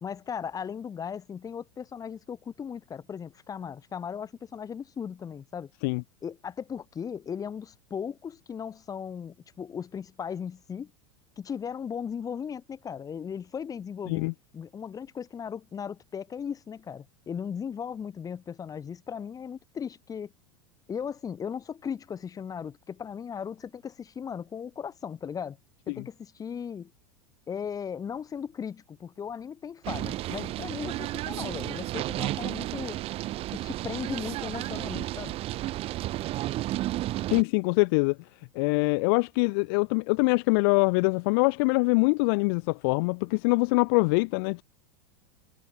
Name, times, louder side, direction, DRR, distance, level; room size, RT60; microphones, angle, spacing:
voice 1, 0.0-5.7 6.2-10.9 11.4-14.3 14.5-20.3 20.9-25.6 25.9-26.9 27.5-33.0 33.5-35.4, left 7 dB, 25° left, 2.2 m, -37 dB
sound 1, 29.8-37.4, right 16 dB, 40° right, 1.8 m, -32 dB
voice 2, 37.3-38.2 38.6-44.6, left 31 dB, 50° left, 0.6 m, -24 dB
figure-of-eight pair, 90°, 15 cm